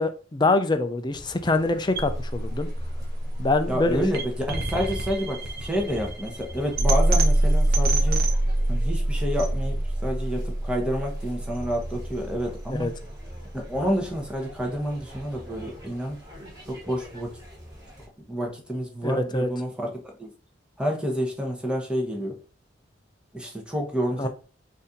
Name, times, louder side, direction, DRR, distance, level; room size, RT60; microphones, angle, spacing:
voice 1, 0.0-2.7 3.4-4.0 12.7-12.9 19.0-19.5 24.2-24.3, left 2 dB, 25° left, 0.5 m, -24 dB
sound 1, 1.1-18.1, equal, 20° right, 1.5 m, -44 dB
sound 2, 1.9-14.0, right 1 dB, 55° right, 0.8 m, -26 dB
voice 2, 3.7-8.3 8.7-13.0 13.5-16.2 16.6-17.4 18.3-20.3 20.8-22.4 23.3-24.3, equal, 5° right, 1.0 m, -29 dB
4.2 x 2.7 x 3.7 m
head